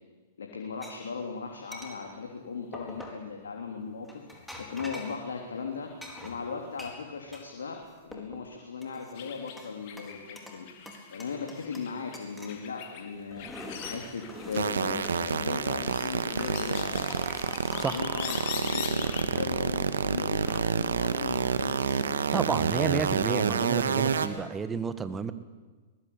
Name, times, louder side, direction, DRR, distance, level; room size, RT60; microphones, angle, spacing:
voice 1, 0.4-4.2 4.6-5.9 6.2-10.7 11.1-17.1 17.7-22.2, left 5 dB, 75° left, 2 dB, 3.4 m, -38 dB
sound 1, 0.8-0.9 1.7-2.0 2.7-3.2 4.1-5.2 6.0-7.5 7.8-8.4 8.8-9.7 10.0-10.6 10.9-11.9 12.1-12.6 13.1-15.2 16.0-19.4 20.2-20.6, left 1 dB, 5° left, 4.5 m, -44 dB
sound 2, 9.2-14.7 15.0-19.2, left 9 dB, 50° left, 3.6 m, -42 dB
sound 3, 14.5-24.3, right 6 dB, 75° right, 1.7 m, -28 dB
voice 2, 22.3-25.3, right 5 dB, 15° right, 11 dB, 1.7 m, -31 dB
23.0 x 20.5 x 8.7 m, 1.4 s
hypercardioid pair, 110°, 0 cm